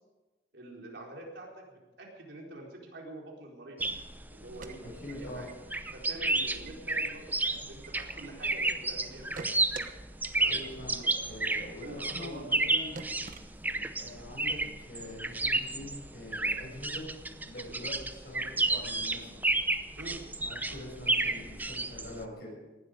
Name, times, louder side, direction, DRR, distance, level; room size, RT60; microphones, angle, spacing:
voice 1, 0.5-3.8 4.2-5.5 5.9-9.5 10.4-10.6 11.0-11.3 11.8-12.4 13.1-13.2 17.6-17.8 19.9-20.2 20.7-20.9, right 1 dB, 90° right, -2 dB, 4.4 m, -46 dB
sound 1, 3.8-22.2, right 2 dB, 10° right, 0.7 m, -32 dB
sound 2, 4.4-5.5 5.8-5.9 6.3-6.7 7.0-8.7 9.0-9.9 10.2-10.3 10.6-10.7 11.0-11.1 11.4-11.5 11.8-11.9 12.2-12.3 12.6-12.7 12.9-14.0, right 5 dB, 50° right, 1.1 m, -45 dB
voice 2, 4.8-5.5 10.5-12.9 13.7-17.1 17.4-19.4 20.4-22.6, left 1 dB, 60° left, -1 dB, 6.8 m, -44 dB
19.0 x 12.0 x 5.1 m, 1.1 s
head